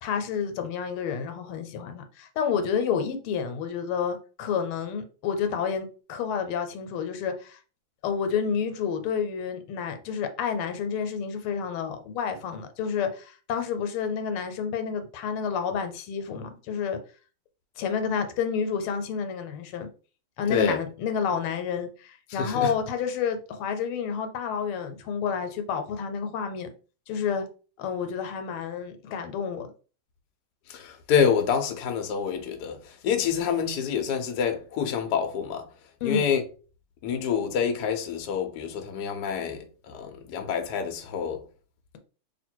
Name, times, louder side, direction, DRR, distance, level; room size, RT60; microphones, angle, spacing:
voice 1, 0.0-7.6 8.0-17.0 17.8-19.9 20.4-26.7 27.1-27.4 27.8-29.7 36.0-36.3, left 6 dB, 85° left, 1.6 m, -29 dB
voice 2, 20.5-20.8 22.3-22.7 30.7-35.7 36.0-36.4 37.0-41.4, left 7 dB, 65° left, 1.0 m, -27 dB
3.0 x 2.8 x 4.4 m
omnidirectional pair, 2.3 m